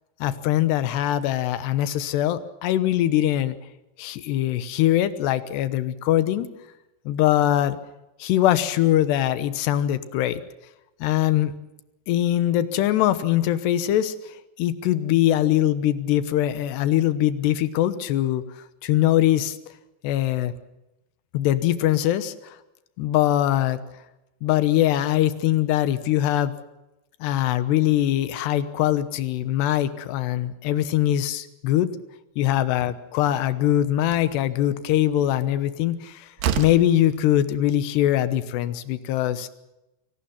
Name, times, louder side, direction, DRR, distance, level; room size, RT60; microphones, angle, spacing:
voice 1, 0.2-3.6 4.0-6.5 7.1-7.8 8.2-10.4 11.0-11.5 12.1-18.4 18.8-19.6 20.0-20.5 21.3-22.6 23.0-23.8 24.4-26.5 27.2-31.9 32.4-36.3 36.6-39.5, left 12 dB, 85° left, 14 dB, 3.2 m, -22 dB
Slam, 33.3-33.4 34.0-34.3 35.9-36.0 36.4-36.9, right 9 dB, 70° right, 2.8 m, -27 dB
25.0 x 18.5 x 7.2 m, 0.93 s
omnidirectional pair, 4.7 m